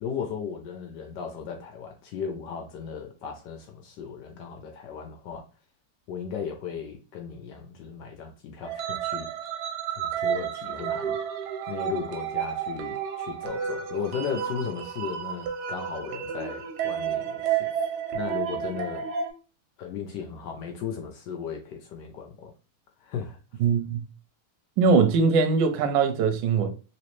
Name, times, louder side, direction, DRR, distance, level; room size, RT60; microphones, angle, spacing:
voice 1, 0.0-5.4 6.1-9.3 9.9-11.2 11.7-17.7 18.1-19.1 19.8-22.5 23.0-23.4, left 7 dB, 75° left, 1.0 m, -36 dB
sound 1, 8.6-19.3, right 8 dB, 90° right, 1.6 m, -31 dB
voice 2, 23.6-24.0 24.8-26.7, right 5 dB, 70° right, 1.2 m, -21 dB
3.1 x 3.0 x 3.0 m
omnidirectional pair, 2.4 m